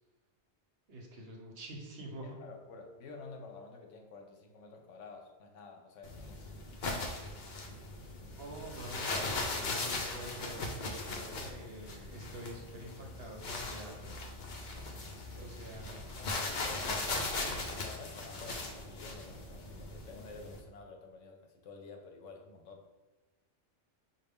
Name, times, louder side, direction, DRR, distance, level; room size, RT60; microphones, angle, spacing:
voice 1, 0.9-2.4 8.4-14.3 15.4-16.0, right 1 dB, 60° right, 0 dB, 0.9 m, -47 dB
voice 2, 2.2-6.5 15.3-15.6 16.2-22.9, left 4 dB, 75° left, 4 dB, 1.0 m, -50 dB
sound 1, 6.0-20.6, left 2 dB, 50° left, 0.6 m, -39 dB
5.2 x 2.3 x 3.5 m, 1.2 s
omnidirectional pair, 1.3 m